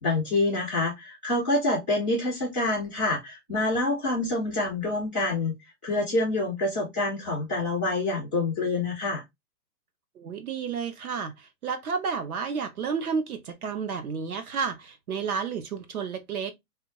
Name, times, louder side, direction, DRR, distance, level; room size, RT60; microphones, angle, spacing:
voice 1, 0.0-5.5 5.8-9.2, left 2 dB, 5° right, 0.6 m, -27 dB
voice 2, 10.2-16.5, right 6 dB, 65° right, 0.8 m, -31 dB
3.5 x 2.4 x 2.8 m
hypercardioid pair, 175°, 48 cm